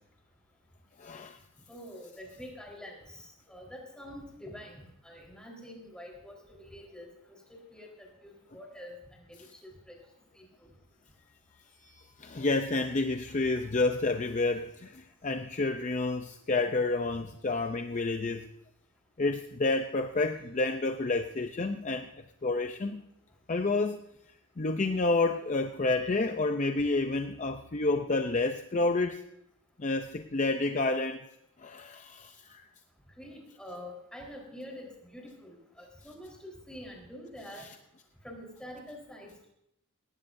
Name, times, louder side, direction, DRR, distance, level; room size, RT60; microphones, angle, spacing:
voice 1, 1.0-1.4 11.8-18.5 19.2-22.1 22.4-23.0 23.5-24.0 24.6-29.2 29.8-31.2 31.6-32.6, left 3 dB, 35° left, 7 dB, 0.5 m, -29 dB
voice 2, 1.7-10.0 10.3-10.7 17.1-17.3 33.2-37.7 38.2-39.5, left 1 dB, 5° left, -1 dB, 4.1 m, -46 dB
19.0 x 17.5 x 2.7 m, 0.79 s
head